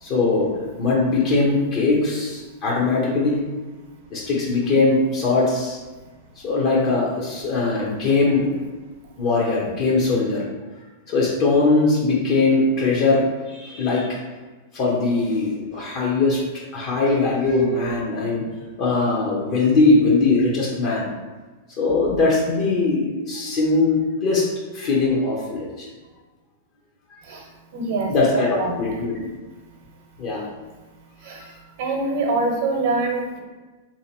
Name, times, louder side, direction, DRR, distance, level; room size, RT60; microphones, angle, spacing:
voice 1, 0.0-0.5 0.8-3.4 4.1-5.8 6.4-8.6 9.2-10.4 11.1-14.2 14.7-16.4 16.7-18.5 18.8-21.1 21.8-25.9 28.1-29.3 30.2-30.4, left 3 dB, 45° left, -4 dB, 0.8 m, -20 dB
voice 2, 27.7-28.8 31.2-31.4 31.8-33.4, right 3 dB, 60° right, 1 dB, 0.8 m, -24 dB
3.1 x 2.8 x 2.8 m, 1.3 s
hypercardioid pair, 110°, 0 cm